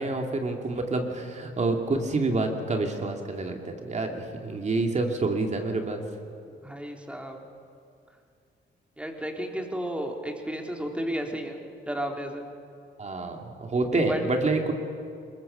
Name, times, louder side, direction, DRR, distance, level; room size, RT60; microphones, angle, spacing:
voice 1, 0.0-6.0 13.0-14.7, right 3 dB, 35° right, 3 dB, 2.7 m, -28 dB
voice 2, 6.5-7.4 9.0-11.6 11.9-12.5 13.9-14.2, equal, 5° right, 2 dB, 3.1 m, -33 dB
21.5 x 21.0 x 6.9 m, 2.4 s
cardioid pair, 90°, 20 cm